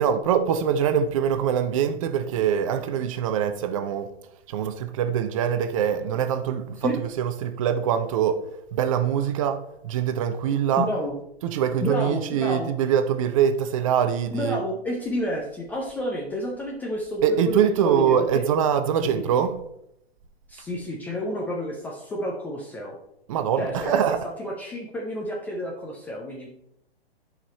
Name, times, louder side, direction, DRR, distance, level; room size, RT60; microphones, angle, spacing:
voice 1, 0.0-4.1 4.5-8.4 8.7-10.9 11.4-14.6 17.2-19.6 23.3-24.2, right 8 dB, 35° right, 0.7 m, -24 dB
voice 2, 10.8-11.1 11.8-12.7 14.3-18.4 19.0-19.4 20.5-23.0 23.6-26.5, left 1 dB, 5° left, 0.4 m, -30 dB
9.9 x 5.0 x 4.3 m
figure-of-eight pair, 115°, 31 cm